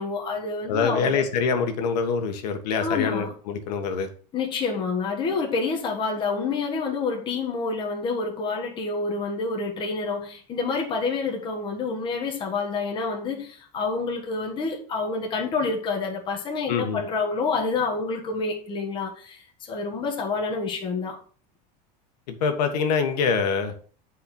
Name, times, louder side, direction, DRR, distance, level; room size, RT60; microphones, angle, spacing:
voice 1, 0.0-1.2 2.8-3.3 4.3-21.2, left 4 dB, 25° left, 1.4 m, -28 dB
voice 2, 0.7-4.1 16.7-17.0 22.3-23.7, left 5 dB, 85° left, 1.5 m, -25 dB
8.5 x 4.9 x 4.4 m
supercardioid pair, 165°, 20 cm